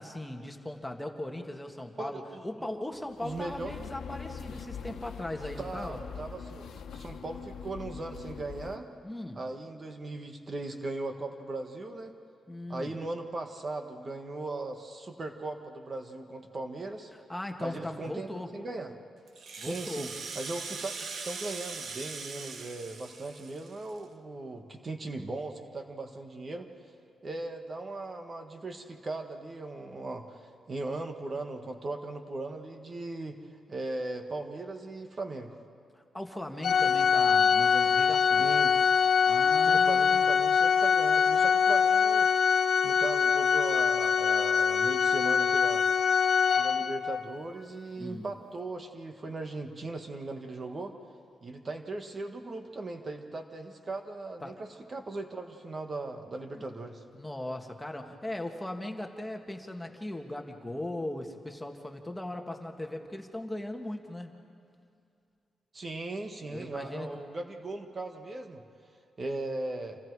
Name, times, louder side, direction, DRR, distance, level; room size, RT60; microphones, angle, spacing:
voice 1, 0.0-6.0 9.0-9.5 12.5-12.9 17.3-18.6 19.6-20.1 35.9-38.5 39.3-40.3 48.0-48.3 54.4-54.6 57.2-64.4 66.5-67.1, left 1 dB, 10° left, 3 dB, 1.8 m, -38 dB
voice 2, 2.0-2.7 3.2-3.7 5.6-8.9 9.4-12.1 12.7-17.1 17.6-18.9 19.6-20.1 20.4-26.7 27.2-33.4 33.7-35.6 38.4-38.8 39.6-42.3 42.8-45.9 46.6-50.9 51.4-57.0 65.7-68.6 69.2-70.0, right 2 dB, 35° right, 5 dB, 1.6 m, -38 dB
sound 1, 3.0-8.8, left 6 dB, 90° left, 1.3 m, -43 dB
Rattle (instrument), 19.3-24.0, right 4 dB, 65° right, 1.4 m, -41 dB
Organ, 36.6-47.2, left 6 dB, 70° left, 1.1 m, -24 dB
29.5 x 27.5 x 4.8 m, 2.4 s
cardioid pair, 105°, 0 cm